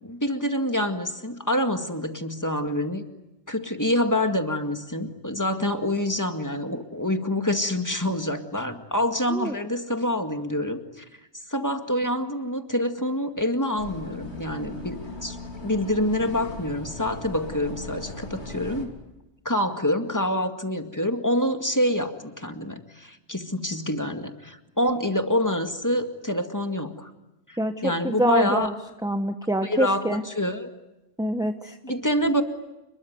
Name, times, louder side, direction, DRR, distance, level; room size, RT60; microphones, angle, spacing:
voice 1, 0.0-3.0 3.5-11.0 11.5-15.4 15.6-18.9 19.5-27.1 27.5-28.7 29.6-30.7 31.8-32.4, left 1 dB, 15° left, 6 dB, 2.1 m, -26 dB
sound 1, 13.8-18.9, left 2 dB, 80° left, 3.7 m, -38 dB
voice 2, 27.6-28.8 29.0-30.2 31.2-31.8, right 1 dB, 5° right, 7 dB, 1.1 m, -25 dB
29.0 x 21.5 x 9.4 m, 0.96 s
omnidirectional pair, 1.1 m